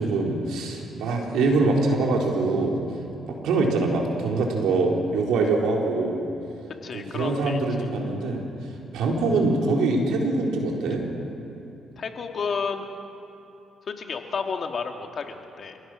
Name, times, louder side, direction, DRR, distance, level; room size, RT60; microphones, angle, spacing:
voice 1, 0.0-2.8 3.2-6.3 6.9-8.4 8.9-11.0, right 3 dB, 85° right, 0 dB, 3.9 m, -24 dB
voice 2, 6.8-7.6 12.0-12.8 13.9-15.8, left 5 dB, 50° left, 4 dB, 2.1 m, -31 dB
29.5 x 17.0 x 6.3 m, 3.0 s
cardioid pair, 90°, 0 cm